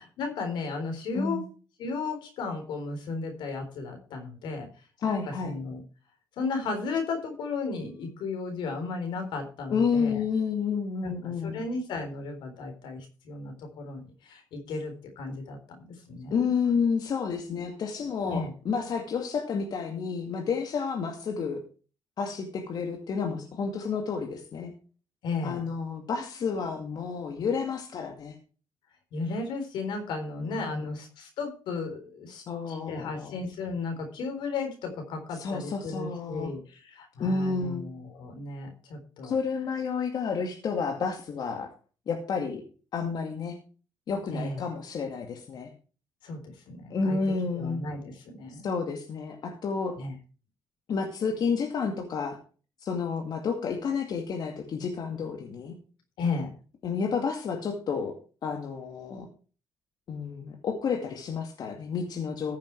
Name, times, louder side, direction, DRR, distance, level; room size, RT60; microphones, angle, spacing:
voice 1, 0.0-1.4 1.8-4.7 5.1-5.8 6.4-10.2 11.0-15.6 15.9-16.5 18.3-18.5 25.2-25.6 29.1-39.4 44.3-44.6 46.2-47.2 47.5-48.6 50.0-50.1 56.2-56.6, left 3 dB, 85° left, 5 dB, 4.0 m, -34 dB
voice 2, 5.0-5.5 9.7-11.6 16.3-21.6 22.2-24.7 25.4-28.4 30.4-31.0 32.3-33.4 35.3-36.5 37.2-37.8 39.2-41.7 42.1-42.6 42.9-43.6 44.1-45.7 46.9-47.8 48.5-50.0 50.9-52.4 52.8-55.8 56.8-58.1 58.4-59.3 60.1-62.6, left 5 dB, 60° left, 3 dB, 2.2 m, -30 dB
14.5 x 7.5 x 4.6 m, 0.36 s
cardioid pair, 95°, 8 cm